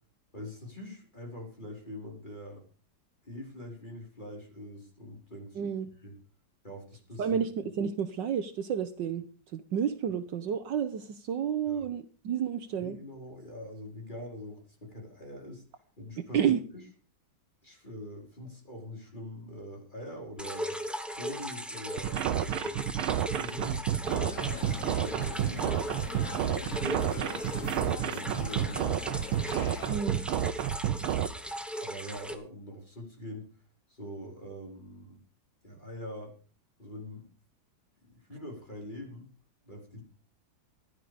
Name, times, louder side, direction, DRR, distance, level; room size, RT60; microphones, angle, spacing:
voice 1, 0.3-2.6 3.2-5.7 6.0-6.2 6.6-7.4 11.7-11.8 12.8-15.6 16.0-16.6 17.6-20.7 21.2-22.8 23.3-23.9 24.2-25.7 26.4-29.0 29.9-30.1 31.8-33.5 33.9-35.2 35.6-36.3 36.8-37.2 38.0-39.3 39.6-40.0, equal, 20° left, 0 dB, 4.8 m, -43 dB
voice 2, 5.5-5.9 7.2-9.2 9.5-13.0 16.3-16.6 29.9-30.2, right 8 dB, 65° right, 10 dB, 1.5 m, -30 dB
sound 1, 20.4-32.3, equal, ahead, 0.8 m, -38 dB
sound 2, 22.0-31.3, right 10 dB, 85° right, 1.6 m, -30 dB
sound 3, 24.1-29.9, left 8 dB, 50° left, 1.0 m, -43 dB
16.0 x 11.5 x 5.1 m, 0.39 s
omnidirectional pair, 2.2 m